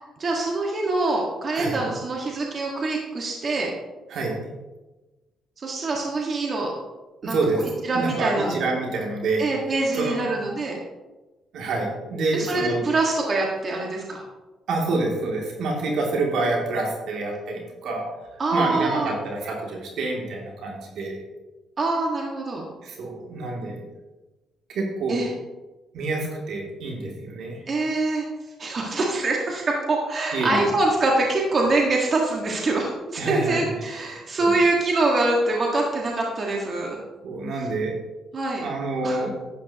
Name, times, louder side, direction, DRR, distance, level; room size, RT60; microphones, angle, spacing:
voice 1, 0.2-3.7 5.6-6.7 7.2-8.6 9.4-10.8 12.3-14.2 18.4-19.1 21.8-22.7 25.1-25.3 27.7-28.3 28.6-37.0 38.3-38.6 39.0-39.2, right 2 dB, 45° right, -1 dB, 1.8 m, -24 dB
voice 2, 4.1-4.4 7.2-7.6 7.9-9.5 9.9-10.3 11.5-12.8 14.7-18.1 18.5-21.2 22.8-23.8 24.7-25.2 25.9-27.6 30.3-30.6 33.2-33.8 34.3-34.5 37.2-38.0 38.6-39.3, right 3 dB, 75° right, -1 dB, 2.8 m, -27 dB
11.5 x 9.1 x 3.0 m, 1.1 s
cardioid pair, 90°, 0 cm